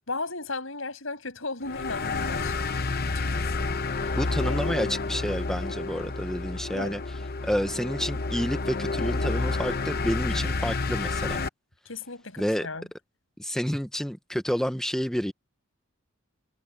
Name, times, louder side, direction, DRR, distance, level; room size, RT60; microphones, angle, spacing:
voice 1, 0.1-2.8 3.3-3.7 4.0-4.6 6.7-7.0 11.8-12.9, left 3 dB, 75° left, 6.4 m, -36 dB
sound 1, 1.6-11.5, left 3 dB, 50° left, 0.8 m, -29 dB
voice 2, 4.2-7.0 7.4-11.4 12.4-12.7 13.4-15.3, equal, 5° left, 0.8 m, -29 dB
head